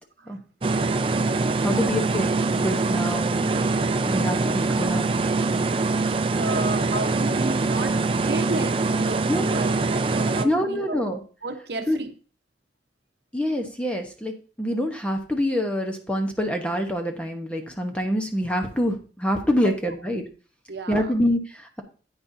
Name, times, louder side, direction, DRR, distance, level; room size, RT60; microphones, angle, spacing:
sound 1, 0.6-10.5, right 3 dB, 30° right, 0.4 m, -23 dB
voice 1, 1.6-2.3 2.6-3.4 4.1-5.0 9.3-9.5 10.4-11.2 11.9-12.0 13.3-20.2 20.9-21.8, equal, 5° left, 4 dB, 1.0 m, -26 dB
voice 2, 6.3-11.1 11.4-12.1 19.6-19.8 20.7-21.2, right 2 dB, 60° right, 6 dB, 1.0 m, -32 dB
9.6 x 8.9 x 2.7 m, 0.37 s
head